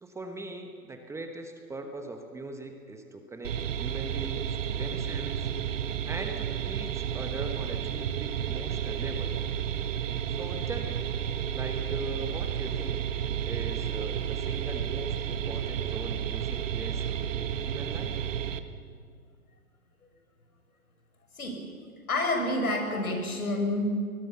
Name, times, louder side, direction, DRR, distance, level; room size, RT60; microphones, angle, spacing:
voice 1, 0.0-5.5 6.1-9.3 10.3-11.1 11.5-13.0 13.4-18.2, right 2 dB, 5° right, 5 dB, 1.1 m, -40 dB
sound 1, 3.4-18.6, right 9 dB, 60° right, 1.5 m, -32 dB
voice 2, 22.1-23.9, left 2 dB, 80° left, 3 dB, 6.3 m, -28 dB
24.5 x 20.5 x 7.0 m, 2.1 s
hypercardioid pair, 130°, 43 cm